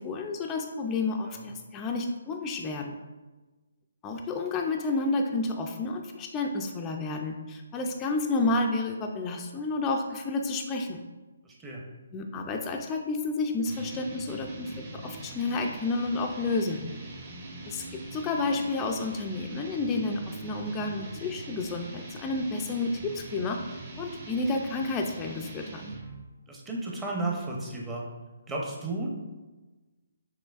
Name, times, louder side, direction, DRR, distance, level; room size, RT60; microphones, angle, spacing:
voice 1, 0.0-3.0 4.0-11.0 12.1-16.8 17.7-17.8 18.1-23.6 24.0-25.9, left 3 dB, 15° left, 2 dB, 0.3 m, -30 dB
voice 2, 11.4-11.8 26.5-28.1 28.5-29.1, right 2 dB, 10° right, -2 dB, 0.7 m, -33 dB
sound 1, 13.7-26.2, right 2 dB, 35° right, 1.0 m, -43 dB
6.2 x 3.0 x 2.4 m, 1.2 s
hypercardioid pair, 155°, 0 cm